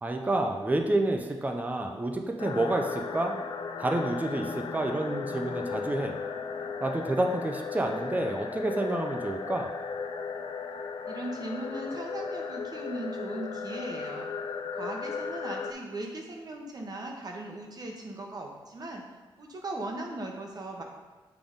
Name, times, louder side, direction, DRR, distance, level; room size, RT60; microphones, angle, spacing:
voice 1, 0.0-3.3 3.8-6.2 6.8-9.7, right 2 dB, 15° right, 4 dB, 0.5 m, -29 dB
sound 1, 2.4-15.7, left 5 dB, 65° left, 0.4 m, -36 dB
voice 2, 11.1-14.3 14.7-19.0 19.4-20.8, right 1 dB, 45° right, 1 dB, 1.0 m, -38 dB
6.8 x 3.8 x 3.6 m, 1.3 s
wide cardioid pair, 100°, 9 cm